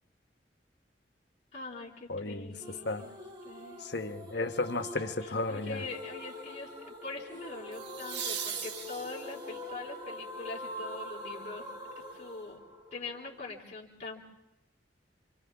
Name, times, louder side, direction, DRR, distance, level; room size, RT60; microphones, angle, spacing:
voice 1, 1.5-3.2 3.4-3.8 5.2-11.6 12.1-12.6 12.9-14.2, left 3 dB, 40° left, -4 dB, 3.6 m, -43 dB
voice 2, 2.1-2.5 2.9-3.0 3.8-5.8, left 2 dB, 70° left, 6 dB, 1.3 m, -33 dB
sound 1, 2.6-13.5, left 1 dB, 25° right, 1.8 m, -44 dB
sound 2, 4.7-5.0 7.7-9.6 12.5-12.6, right 7 dB, 70° right, 1.3 m, -39 dB
28.0 x 26.5 x 3.6 m, 0.94 s
head